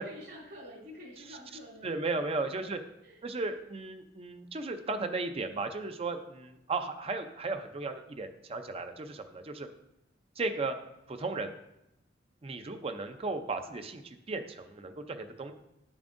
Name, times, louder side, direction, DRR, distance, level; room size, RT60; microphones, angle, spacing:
voice 1, 0.0-2.8 3.0-3.2, equal, 65° right, -9 dB, 2.7 m, -49 dB
voice 2, 1.8-2.8 3.2-9.7 10.4-10.7 11.1-11.5 12.4-15.5, right 3 dB, 35° right, 8 dB, 0.5 m, -35 dB
9.6 x 7.1 x 2.6 m, 0.87 s
head